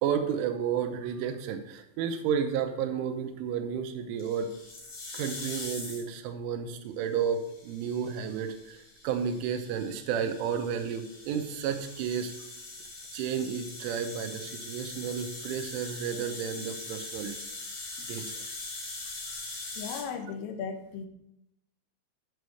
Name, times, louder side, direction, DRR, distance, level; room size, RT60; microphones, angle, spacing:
voice 1, 0.0-4.5 5.1-12.3 13.1-17.3 18.1-18.3 19.3-19.4, right 7 dB, 80° right, 7 dB, 3.1 m, -32 dB
sound 1, 4.2-6.2 7.2-20.0, left 2 dB, 45° left, 2.3 m, -42 dB
voice 2, 19.8-21.1, left 6 dB, 80° left, 5 dB, 3.4 m, -36 dB
9.3 x 4.9 x 6.3 m, 0.81 s
omnidirectional pair, 5.9 m